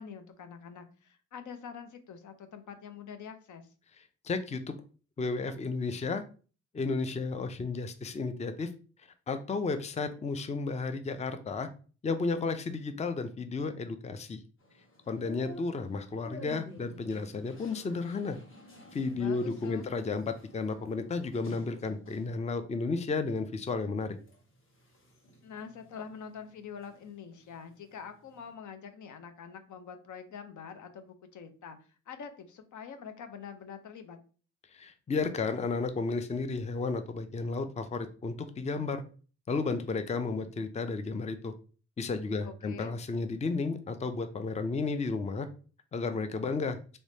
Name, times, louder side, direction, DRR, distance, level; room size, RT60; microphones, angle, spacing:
voice 1, 0.0-3.7 19.2-19.9 25.4-31.8 32.1-34.2 42.4-42.9, left 6 dB, 75° left, 8 dB, 0.7 m, -45 dB
voice 2, 4.2-4.8 5.2-6.2 6.7-8.7 9.0-11.7 12.0-14.4 15.1-18.4 18.9-24.2 34.7-39.0 39.5-41.5 42.0-45.5 45.9-46.8, left 4 dB, 20° left, 9 dB, 0.4 m, -33 dB
sound 1, 14.6-22.5 23.0-23.7 24.2-27.1 27.3-28.5, equal, 40° left, 1.3 m, -51 dB
3.2 x 3.1 x 2.7 m, 0.38 s
cardioid pair, 65°, 30 cm